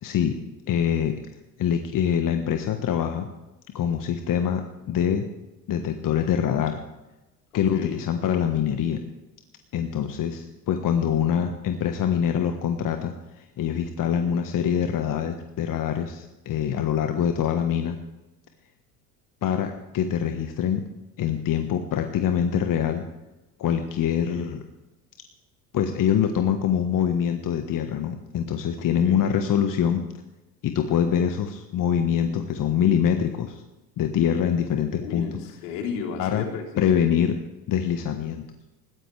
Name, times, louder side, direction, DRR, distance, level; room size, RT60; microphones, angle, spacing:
voice 1, 0.0-0.4 0.7-1.2 1.6-3.3 3.7-5.3 5.7-6.8 7.5-9.0 9.7-18.0 19.4-20.8 21.2-23.0 23.6-24.6 25.7-30.0 30.6-33.6 34.0-35.3 36.2-36.4 36.8-37.4 37.7-38.4, left 8 dB, 40° left, 6 dB, 1.4 m, -24 dB
voice 2, 7.5-8.0 29.0-29.2 34.9-36.9, left 6 dB, 70° left, 1 dB, 3.7 m, -34 dB
20.5 x 16.0 x 3.4 m, 1.0 s
hypercardioid pair, 65°, 49 cm